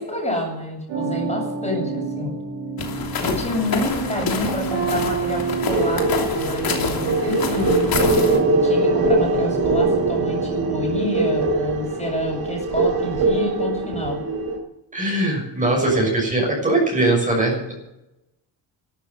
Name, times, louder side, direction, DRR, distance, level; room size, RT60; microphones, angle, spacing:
voice 1, 0.0-2.3 3.2-14.2, left 1 dB, 15° left, 0 dB, 7.7 m, -28 dB
sound 1, 0.9-11.1, right 6 dB, 90° right, 5.6 m, -29 dB
sound 2, 2.8-8.4, left 5 dB, 55° left, 3.1 m, -28 dB
sound 3, 5.7-14.6, right 2 dB, 55° right, 4.7 m, -22 dB
voice 2, 14.9-17.7, right 2 dB, 20° right, -2 dB, 6.6 m, -20 dB
13.5 x 13.5 x 7.8 m, 0.89 s
cardioid pair, 105°, 43 cm